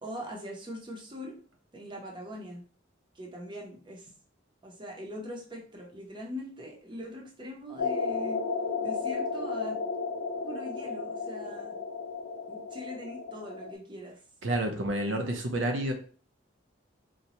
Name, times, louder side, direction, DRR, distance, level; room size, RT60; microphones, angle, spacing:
voice 1, 0.0-1.4 1.7-2.7 3.1-4.1 4.6-8.4 8.8-9.8 10.4-11.8 12.5-14.2, equal, 25° right, -1 dB, 0.7 m, -42 dB
sound 1, 7.8-13.7, left 4 dB, 60° left, 0.6 m, -33 dB
voice 2, 14.4-15.9, right 1 dB, 85° right, 4 dB, 0.7 m, -29 dB
4.0 x 2.2 x 2.9 m, 0.42 s
head